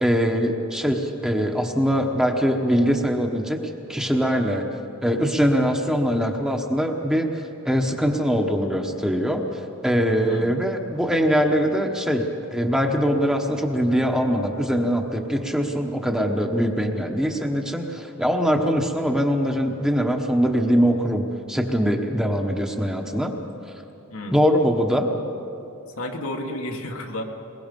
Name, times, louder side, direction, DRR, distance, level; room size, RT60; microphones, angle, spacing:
voice 1, 0.0-3.6 3.9-4.6 5.0-7.3 7.6-12.3 12.5-23.3 24.3-25.1, equal, 5° right, 3 dB, 1.1 m, -22 dB
voice 2, 10.3-10.6 24.1-24.4 26.0-27.2, left 1 dB, 75° left, 2 dB, 1.8 m, -32 dB
22.5 x 21.5 x 5.4 m, 2.8 s
head